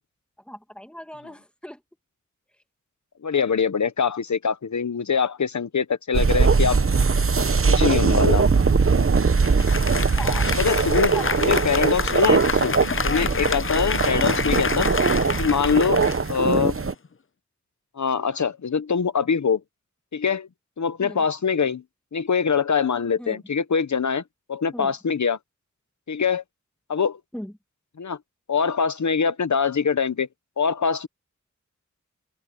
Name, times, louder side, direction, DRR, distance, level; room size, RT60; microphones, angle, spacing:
voice 1, 0.5-1.8 10.2-10.5 11.1-11.4 21.0-21.3 23.2-23.4 24.7-24.9 27.3-27.5, equal, 5° left, 2.2 m, -37 dB
voice 2, 3.2-6.8 7.7-8.4 10.6-11.1 11.4-12.8 13.0-14.9 15.4-16.0 16.3-16.8 18.0-19.6 20.1-20.5 20.8-21.8 22.1-24.2 24.5-25.4 26.1-26.4 26.9-27.2 28.0-28.2 28.5-30.3 30.6-31.1, left 6 dB, 75° left, 0.9 m, -23 dB
sound 1, 6.1-16.9, right 4 dB, 45° right, 1.0 m, -21 dB
Applause, 9.4-17.1, left 5 dB, 45° left, 0.7 m, -28 dB
open air
wide cardioid pair, 50°, 30 cm